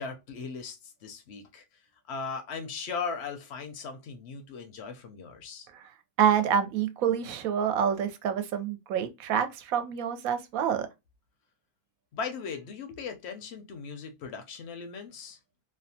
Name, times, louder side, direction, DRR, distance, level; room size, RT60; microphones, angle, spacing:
voice 1, 0.0-1.6 2.1-5.7 12.1-15.4, left 5 dB, 60° left, 0.7 m, -38 dB
voice 2, 6.2-10.9, right 8 dB, 75° right, 1.0 m, -27 dB
2.6 x 2.1 x 2.6 m
omnidirectional pair, 1.6 m